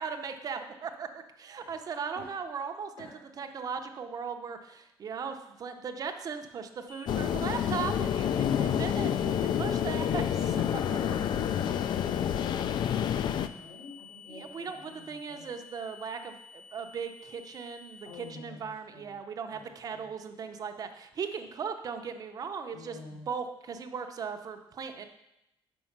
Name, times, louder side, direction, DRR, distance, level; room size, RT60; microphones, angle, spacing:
voice 1, 0.0-3.1 3.4-10.4 14.3-25.1, right 6 dB, 40° right, 6 dB, 0.7 m, -38 dB
sound 1, 6.9-18.3, left 7 dB, 25° left, 0.7 m, -50 dB
sound 2, 7.1-13.5, left 9 dB, 55° left, 0.4 m, -28 dB
voice 2, 13.0-15.5 18.0-19.2 19.5-20.1 22.7-23.3, left 2 dB, 75° left, -1 dB, 2.3 m, -48 dB
6.3 x 5.4 x 5.9 m, 0.87 s
cardioid pair, 155°, 9 cm